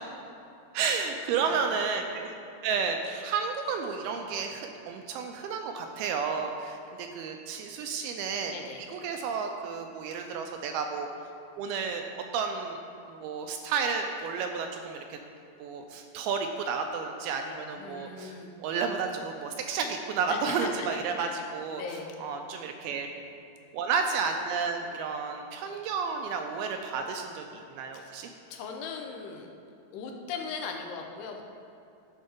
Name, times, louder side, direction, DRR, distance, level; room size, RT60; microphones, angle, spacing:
voice 1, 0.7-2.3 2.6-8.5 8.9-11.1 11.6-12.1 12.3-12.8 13.1-15.2 15.6-18.3 18.6-21.8 22.2-23.1 23.7-28.3, right 5 dB, 80° right, 4 dB, 2.3 m, -31 dB
voice 2, 8.5-8.8 17.8-18.5 20.3-21.3 21.8-22.1 27.9-29.5 29.9-31.4, left 5 dB, 90° left, 2 dB, 2.8 m, -39 dB
12.0 x 4.4 x 5.2 m, 2.7 s
omnidirectional pair, 4.7 m